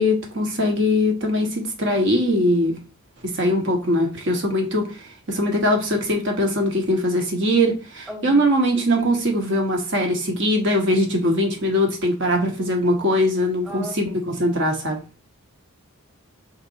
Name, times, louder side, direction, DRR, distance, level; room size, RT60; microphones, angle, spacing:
voice 1, 0.0-2.8 3.3-5.0 5.3-15.0, left 1 dB, 55° right, 2 dB, 1.2 m, -21 dB
voice 2, 8.1-8.4 13.6-14.2, right 1 dB, 5° right, -1 dB, 1.1 m, -36 dB
4.1 x 3.7 x 2.7 m, 0.32 s
head